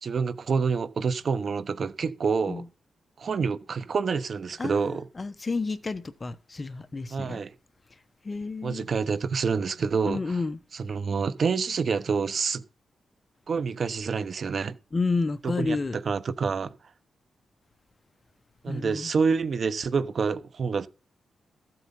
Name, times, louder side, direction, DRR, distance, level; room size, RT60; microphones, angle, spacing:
voice 1, 0.0-2.6 3.2-5.1 7.1-7.5 8.6-10.4 10.7-12.6 13.5-14.8 15.4-16.7 18.6-20.9, right 5 dB, 50° right, 1.0 m, -27 dB
voice 2, 5.2-7.4 8.2-8.9 10.0-10.6 14.9-16.0 18.7-19.2, left 3 dB, 30° left, 1.0 m, -30 dB
14.5 x 7.8 x 5.4 m
cardioid pair, 110°, 0 cm